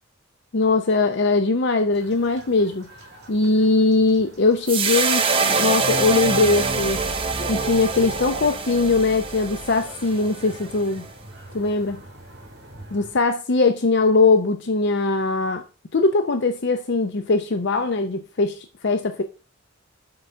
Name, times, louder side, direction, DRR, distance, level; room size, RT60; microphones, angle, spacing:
voice 1, 0.5-2.9 3.3-7.0 7.5-11.1 11.5-12.0 12.9-15.6 15.9-19.2, left 3 dB, 55° left, 0.6 m, -21 dB
sound 1, 1.9-13.2, right 1 dB, 50° right, 2.6 m, -42 dB
sound 2, 4.7-11.1, right 4 dB, 25° right, 0.7 m, -25 dB
7.7 x 3.9 x 5.5 m
head